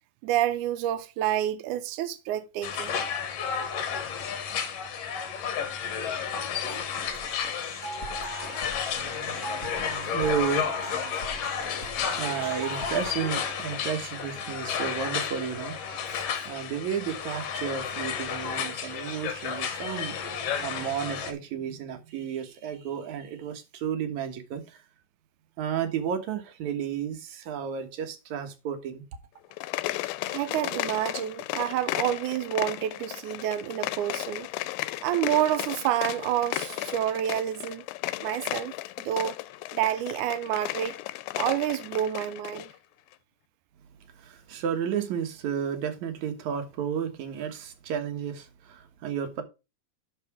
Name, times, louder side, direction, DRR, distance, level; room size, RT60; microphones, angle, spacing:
voice 1, 0.2-2.9 30.3-34.5 35.0-37.9 38.2-38.7 39.0-39.4 39.7-41.0 41.3-42.7, right 12 dB, 85° right, 1.7 m, -28 dB
sound 1, 2.6-21.3, left 7 dB, 65° left, 1.6 m, -32 dB
sound 2, 7.0-13.1, right 1 dB, 30° left, 1.8 m, -39 dB
voice 2, 8.9-11.2 11.7-15.8 16.4-24.8 25.6-29.0 44.2-49.4, right 8 dB, 60° right, 2.3 m, -33 dB
sound 3, 29.5-42.7, left 17 dB, 80° left, 2.3 m, -34 dB
11.0 x 4.2 x 4.7 m
omnidirectional pair, 4.2 m